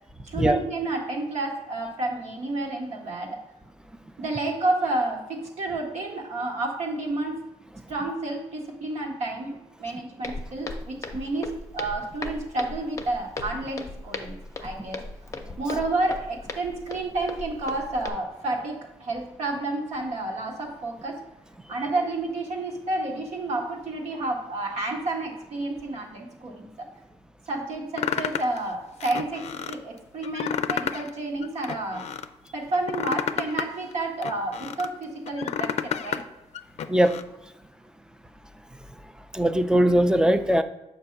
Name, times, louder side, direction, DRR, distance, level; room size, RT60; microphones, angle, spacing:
voice 1, 0.3-3.4 4.2-7.4 7.9-15.0 15.6-21.2 21.7-26.9 27.5-32.0 32.5-36.2, right 2 dB, 80° right, 0 dB, 1.4 m, -30 dB
Walk footsteps, 10.2-18.1, left 3 dB, 30° left, 0.6 m, -37 dB
sound 1, 28.0-28.6 29.0-29.8 30.2-31.1 31.4-32.3 32.7-34.9 35.3-36.2 36.5-37.2, left 8 dB, 70° left, 0.4 m, -30 dB
voice 2, 39.3-40.6, right 1 dB, 5° right, 9 dB, 0.3 m, -20 dB
7.5 x 2.7 x 5.7 m, 0.99 s
wide cardioid pair, 135°, 11 cm